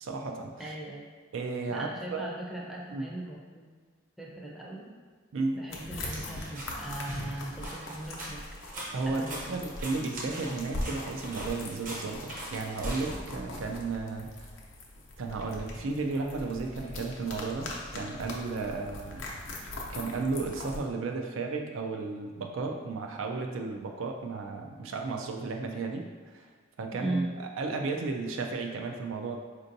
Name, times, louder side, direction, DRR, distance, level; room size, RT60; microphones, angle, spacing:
voice 1, 0.0-0.7 1.3-2.3 2.9-3.0 5.3-5.6 8.9-14.5 15.2-19.2 19.6-26.5 26.8-29.4, right 3 dB, 85° right, 3 dB, 0.4 m, -34 dB
voice 2, 0.6-1.1 1.7-3.7 4.2-4.9 5.5-8.5 9.1-9.6 27.0-27.3, right 2 dB, ahead, -4 dB, 0.5 m, -38 dB
sound 1, 5.7-20.8, left 1 dB, 80° left, 0.6 m, -41 dB
sound 2, 6.0-13.7, right 1 dB, 45° right, 0.7 m, -43 dB
4.3 x 2.6 x 2.6 m, 1.5 s
head